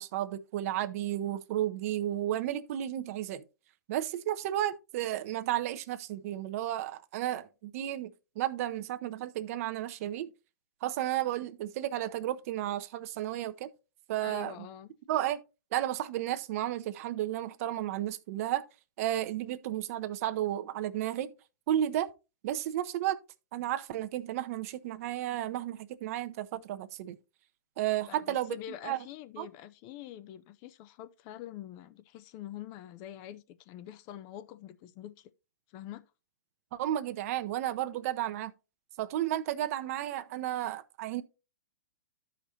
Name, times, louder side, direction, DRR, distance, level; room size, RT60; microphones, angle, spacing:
voice 1, 0.0-3.4 3.9-10.3 10.8-13.7 14.1-14.7 15.1-15.4 15.7-18.6 19.0-21.3 21.7-22.1 22.4-23.2 23.5-27.2 27.8-28.6 28.8-29.0 29.4-29.5 36.7-38.5 39.0-41.2, right 12 dB, 50° right, 0.7 m, -33 dB
voice 2, 14.2-14.9 28.1-35.3 35.7-36.1, left 12 dB, 35° left, 0.6 m, -45 dB
13.5 x 5.1 x 2.8 m
hypercardioid pair, 125°, 10 cm